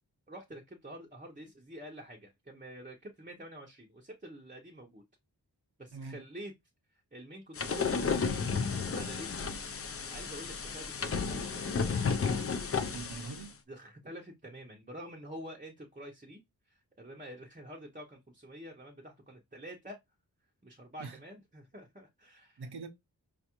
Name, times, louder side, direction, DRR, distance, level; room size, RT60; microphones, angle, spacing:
voice 1, 0.3-5.0 5.8-6.5 7.1-8.5 8.9-9.6 10.1-12.0 13.7-16.4 16.7-20.0 20.6-22.6, right 1 dB, 20° right, 0.6 m, -47 dB
sound 1, 7.6-13.5, left 5 dB, 35° left, 0.4 m, -33 dB
voice 2, 12.9-13.6 21.0-21.2 22.6-22.9, right 4 dB, 75° right, 0.7 m, -43 dB
5.1 x 2.3 x 2.9 m
wide cardioid pair, 65°, 39 cm